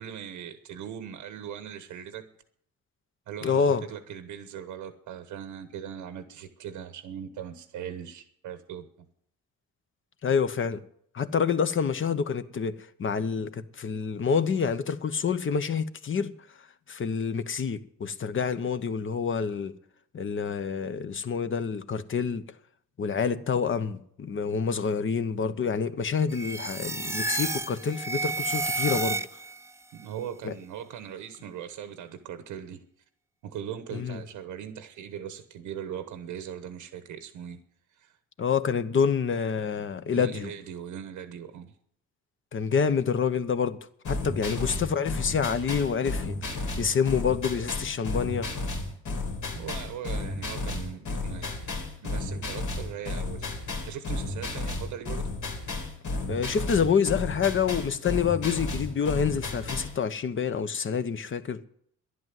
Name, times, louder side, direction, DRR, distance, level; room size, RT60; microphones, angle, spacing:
voice 1, 0.0-2.3 3.3-8.9 29.9-32.8 33.4-37.6 38.0-38.2 40.1-41.7 44.4-44.6 49.5-51.7 52.0-55.3, right 9 dB, 90° right, 1.2 m, -40 dB
voice 2, 3.4-3.8 10.2-10.8 11.1-16.3 16.9-19.7 20.1-22.4 23.0-29.2 30.4-30.5 33.9-34.2 38.4-40.5 42.5-43.8 44.1-46.4 46.8-48.5 56.3-61.6, left 6 dB, 40° left, 1.1 m, -27 dB
sound 1, 26.3-29.7, right 3 dB, 10° right, 0.5 m, -31 dB
sound 2, 44.0-60.0, left 2 dB, 75° left, 3.3 m, -33 dB
12.0 x 11.0 x 7.8 m
cardioid pair, 90°, 30 cm